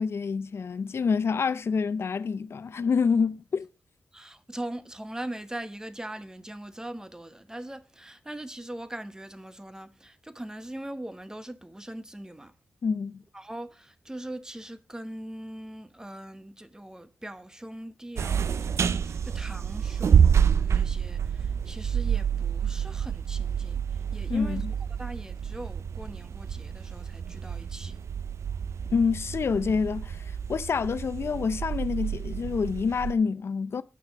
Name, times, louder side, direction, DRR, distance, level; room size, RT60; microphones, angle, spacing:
voice 1, 0.0-3.7 12.8-13.2 24.3-24.7 28.9-33.8, left 5 dB, 55° left, 0.5 m, -27 dB
voice 2, 4.1-12.5 13.3-24.6 25.0-28.0, right 1 dB, 10° right, 1.0 m, -41 dB
sound 1, 18.2-33.1, right 7 dB, 65° right, 0.5 m, -28 dB
9.2 x 5.9 x 6.5 m
cardioid pair, 70°, 5 cm